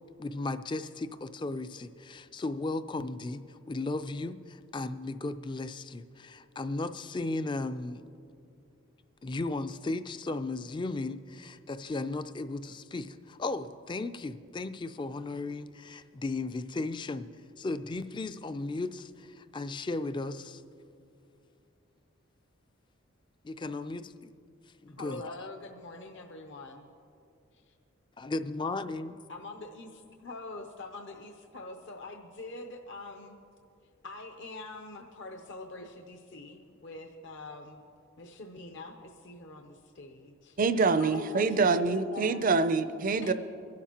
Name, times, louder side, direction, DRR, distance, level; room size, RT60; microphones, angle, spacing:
voice 1, 0.2-8.0 9.2-17.3 17.6-20.6 23.4-24.3 24.8-25.2 28.2-29.2, left 2 dB, 20° left, 12 dB, 0.3 m, -35 dB
voice 2, 24.9-26.9 27.5-27.7 29.3-33.4 34.0-37.8 38.2-40.6 41.0-42.4 43.2-43.3, left 3 dB, 60° left, 4 dB, 0.7 m, -44 dB
voice 3, 40.6-43.3, right 4 dB, 40° right, 12 dB, 0.5 m, -25 dB
23.0 x 12.0 x 2.9 m, 2.5 s
head